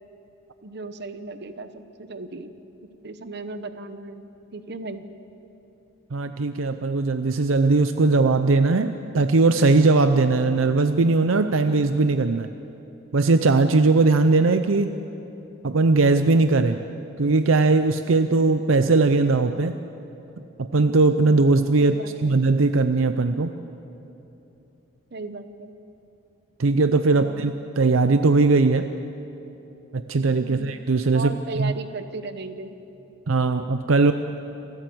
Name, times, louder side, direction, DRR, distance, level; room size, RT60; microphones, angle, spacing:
voice 1, 0.6-2.5 3.0-5.1 21.8-22.3 25.1-25.7 27.1-27.4 30.4-30.7 31.1-32.8, right 3 dB, 55° right, 10 dB, 1.0 m, -36 dB
voice 2, 6.1-12.5 13.1-15.0 15.6-16.8 17.2-19.8 20.6-22.0 22.2-23.5 26.6-28.9 29.9-31.3 31.6-31.7 33.3-34.1, right 3 dB, 80° right, 9 dB, 0.6 m, -19 dB
27.5 x 13.0 x 7.9 m, 2.9 s
head